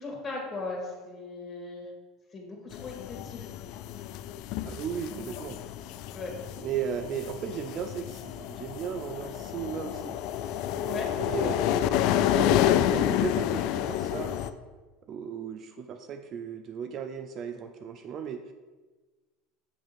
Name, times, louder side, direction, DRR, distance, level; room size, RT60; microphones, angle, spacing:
voice 1, 0.0-1.9 2.3-3.5 5.1-5.3 6.1-6.3 10.8-11.1, left 3 dB, 25° left, 0 dB, 2.1 m, -38 dB
sound 1, 2.7-14.5, left 11 dB, 60° left, 0.3 m, -29 dB
voice 2, 4.6-5.6 6.6-10.2 11.2-14.4 15.1-18.5, right 7 dB, 45° right, 7 dB, 0.4 m, -36 dB
7.0 x 3.5 x 5.2 m, 1.3 s
supercardioid pair, 105°, 0 cm